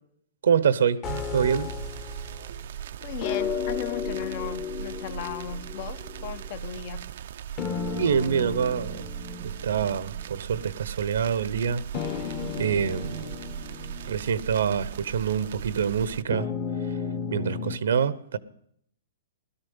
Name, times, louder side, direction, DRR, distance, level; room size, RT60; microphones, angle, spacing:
voice 1, 0.4-1.7 8.0-9.0 9.4-13.3 14.1-16.5 17.3-18.4, right 7 dB, 80° right, 1.0 m, -26 dB
sound 1, 1.0-2.6 3.2-6.5 7.6-10.4 10.7-10.8 11.9-15.1 16.3-17.8, left 6 dB, 30° left, 1.3 m, -34 dB
sound 2, 1.0-16.2, right 10 dB, 65° right, 0.6 m, -38 dB
voice 2, 3.0-7.0, left 9 dB, 50° left, 1.1 m, -36 dB
17.0 x 13.0 x 5.5 m
hypercardioid pair, 150°, 0 cm